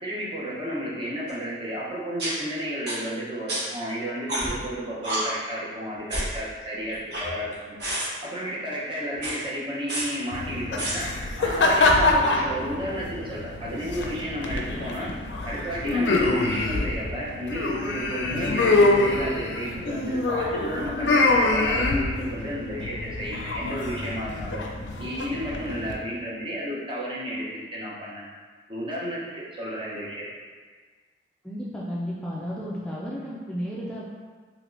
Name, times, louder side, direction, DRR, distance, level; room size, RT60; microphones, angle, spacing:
voice 1, 0.0-7.8 8.2-11.1 11.4-15.1 15.4-24.6 25.0-28.3 28.7-30.3, equal, 30° right, -6 dB, 0.7 m, -32 dB
sound 1, 1.3-1.4 2.2-2.3 2.9-3.0 3.5-3.6 4.3-4.6 5.0-5.2 6.1-6.3 6.9-7.5 7.8-8.1 9.2-9.3 9.9-10.0 10.8-10.9, right 1 dB, 65° right, 1.0 m, -29 dB
sound 2, 10.3-25.9, left 2 dB, 75° left, 0.4 m, -25 dB
voice 2, 31.4-34.0, equal, 5° left, -7 dB, 0.3 m, -33 dB
3.4 x 2.9 x 2.5 m, 1.5 s
head